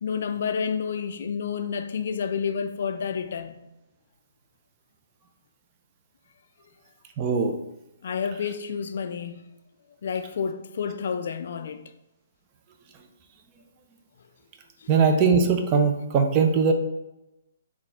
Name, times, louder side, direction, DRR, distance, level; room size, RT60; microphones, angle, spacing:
voice 1, 0.0-3.6 8.0-9.5 10.0-11.8 14.8-14.9, left 6 dB, 60° left, 0.3 m, -30 dB
voice 2, 7.2-7.5 14.9-16.7, right 5 dB, 30° right, 0.5 m, -20 dB
3.9 x 2.4 x 4.3 m
figure-of-eight pair, 135°, 0 cm